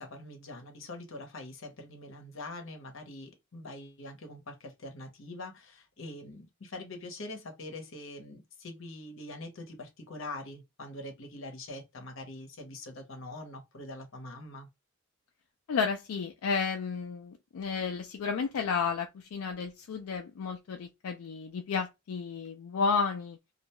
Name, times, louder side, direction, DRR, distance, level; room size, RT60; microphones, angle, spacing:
voice 1, 0.0-14.7, left 2 dB, 65° left, 0.8 m, -44 dB
voice 2, 15.7-23.4, left 5 dB, 85° left, 0.4 m, -32 dB
2.4 x 2.2 x 2.9 m
head